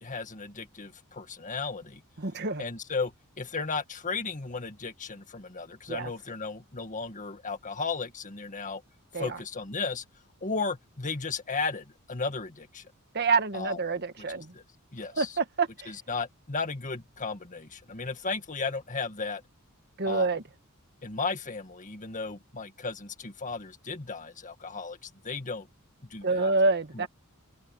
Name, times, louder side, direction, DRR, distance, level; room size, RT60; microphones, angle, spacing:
voice 1, 0.0-2.0 2.6-8.8 9.2-10.0 10.4-12.8 13.5-13.8 14.5-14.6 14.9-15.3 15.9-19.4 20.1-20.3 21.0-25.7 26.1-26.5 26.9-27.1, left 4 dB, 35° left, 1.9 m, -35 dB
voice 2, 2.2-2.6 5.9-6.1 9.1-9.4 13.1-14.5 15.1-15.9 20.0-20.4 26.2-27.1, right 3 dB, 50° right, 1.7 m, -27 dB
open air
head